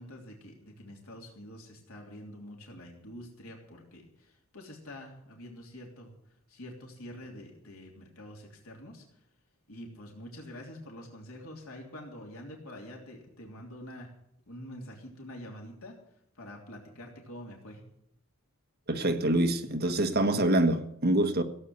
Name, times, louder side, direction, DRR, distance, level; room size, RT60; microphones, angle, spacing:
voice 1, 0.0-6.1 6.5-9.2 9.7-14.1 14.5-16.0 16.4-17.8, left 1 dB, 75° left, 3.2 m, -46 dB
voice 2, 18.9-21.4, right 1 dB, 45° right, 1.4 m, -25 dB
16.5 x 8.3 x 8.0 m
head